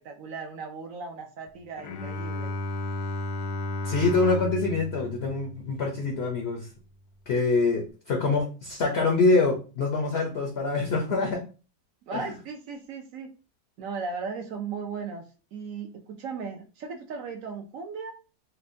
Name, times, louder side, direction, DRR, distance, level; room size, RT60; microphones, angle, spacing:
voice 1, 0.0-2.5 12.1-13.3 13.8-15.2 15.5-18.1, right 5 dB, 70° right, 3 dB, 0.8 m, -36 dB
Bowed string instrument, 1.8-6.3, left 1 dB, 80° left, 1.2 m, -34 dB
voice 2, 3.8-6.7 7.3-11.4 12.1-12.3, left 3 dB, 65° left, 1 dB, 0.6 m, -25 dB
4.2 x 2.2 x 2.6 m, 0.34 s
omnidirectional pair, 1.8 m